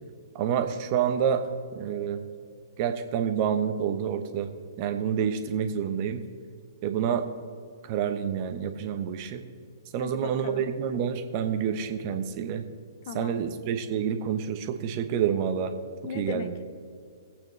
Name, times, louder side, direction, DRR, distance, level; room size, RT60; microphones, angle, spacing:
voice 1, 0.3-1.5 1.7-2.2 2.8-4.5 4.8-6.2 6.8-7.2 7.8-9.4 9.9-12.6 13.1-15.7 16.1-16.5, right 8 dB, 35° right, 7 dB, 0.9 m, -28 dB
voice 2, 10.0-10.7 13.1-13.3 16.0-16.6, left 6 dB, 45° left, 10 dB, 0.9 m, -37 dB
22.5 x 8.6 x 3.2 m, 2.3 s
figure-of-eight pair, 115°, 2 cm